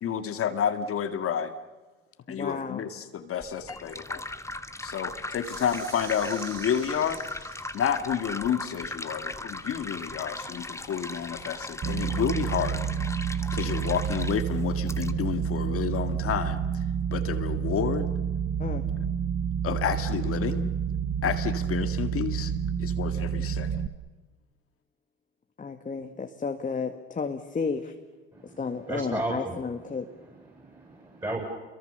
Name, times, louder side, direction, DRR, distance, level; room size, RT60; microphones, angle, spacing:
voice 1, 0.0-1.5 2.3-4.2 4.8-7.2 7.7-12.8 13.5-16.6 17.1-18.1 19.6-20.7 21.2-22.5 22.8-23.7, left 8 dB, 50° left, 8 dB, 2.0 m, -30 dB
voice 2, 2.3-2.9 18.6-18.9 25.6-27.9 28.6-30.1, left 5 dB, 25° left, 5 dB, 1.9 m, -32 dB
sound 1, 3.4-15.1, left 2 dB, 10° left, 1.4 m, -38 dB
sound 2, 5.4-7.9, right 10 dB, 85° right, 2.5 m, -47 dB
sound 3, 11.8-23.9, right 8 dB, 40° right, 1.3 m, -29 dB
voice 3, 28.9-29.6 30.3-31.4, right 1 dB, 10° right, -1 dB, 7.8 m, -34 dB
28.0 x 23.0 x 6.9 m, 1.2 s
hypercardioid pair, 70°, 29 cm